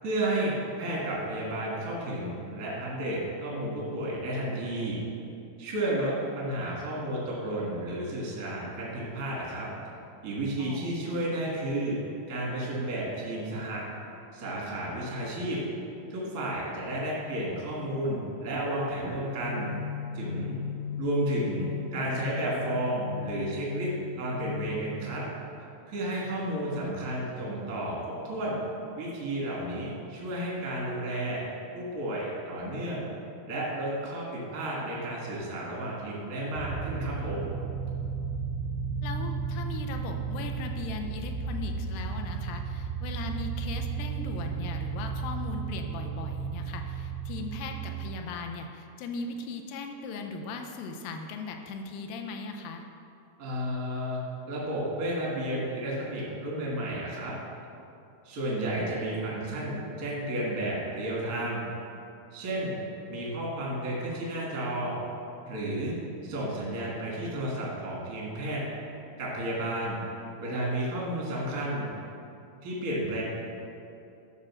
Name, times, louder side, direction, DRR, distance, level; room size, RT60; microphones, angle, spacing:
voice 1, 0.0-5.0 5.6-9.7 10.2-12.0 12.3-13.8 14.3-15.6 16.1-19.7 20.1-20.6 21.0-23.9 24.2-25.2 25.9-27.9 28.3-28.6 29.0-31.5 31.7-33.0 33.5-37.5 53.4-54.2 54.5-57.3 58.2-61.7 62.3-62.8 63.1-65.0 65.4-65.9 66.2-68.6 69.2-70.0 70.4-71.9 72.6-73.2, right 1 dB, 45° right, -4 dB, 1.2 m, -32 dB
voice 2, 10.6-11.4 39.0-52.8, left 4 dB, 80° left, 4 dB, 2.1 m, -38 dB
sound 1, 19.4-24.9, left 7 dB, 60° left, 2.7 m, -37 dB
sound 2, 36.5-48.2, right 6 dB, 80° right, 2.2 m, -34 dB
11.0 x 3.6 x 6.3 m, 2.6 s
omnidirectional pair, 4.7 m